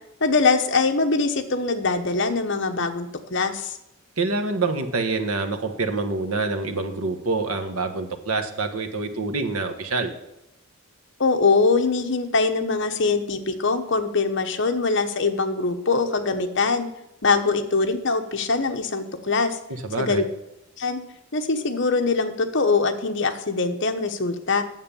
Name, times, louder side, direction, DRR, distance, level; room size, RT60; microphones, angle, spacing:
voice 1, 0.2-3.8 11.2-16.9 17.2-19.6 20.0-20.2 20.8-21.0 21.3-24.6, left 4 dB, 55° left, 7 dB, 1.1 m, -23 dB
voice 2, 4.2-10.1 19.7-20.2, right 3 dB, 90° right, 6 dB, 1.4 m, -26 dB
9.4 x 7.5 x 7.0 m, 0.86 s
head